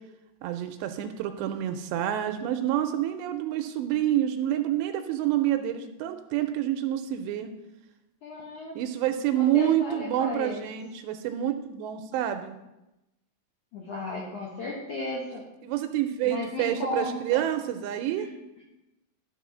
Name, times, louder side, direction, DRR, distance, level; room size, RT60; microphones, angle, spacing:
voice 1, 0.4-7.5 8.8-12.6 15.7-18.3, right 12 dB, 85° right, 8 dB, 2.6 m, -28 dB
voice 2, 8.2-8.7 9.3-10.7 13.7-15.4 16.2-17.4 18.2-18.3, left 2 dB, 75° left, -3 dB, 1.8 m, -34 dB
12.0 x 4.3 x 6.2 m, 0.95 s
omnidirectional pair, 5.2 m